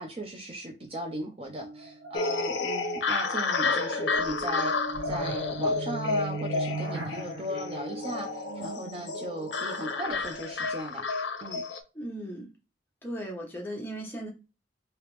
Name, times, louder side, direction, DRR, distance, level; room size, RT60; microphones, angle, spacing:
voice 1, 0.0-4.7 5.0-11.0 11.4-11.6, equal, 30° right, 0.5 m, -37 dB
sound 1, 1.5-10.6, right 3 dB, 75° right, 1.1 m, -40 dB
sound 2, 2.1-11.8, left 3 dB, 70° left, 0.6 m, -31 dB
voice 2, 11.9-12.5 13.0-14.3, right 1 dB, 10° left, 0.9 m, -37 dB
3.3 x 2.9 x 3.1 m
head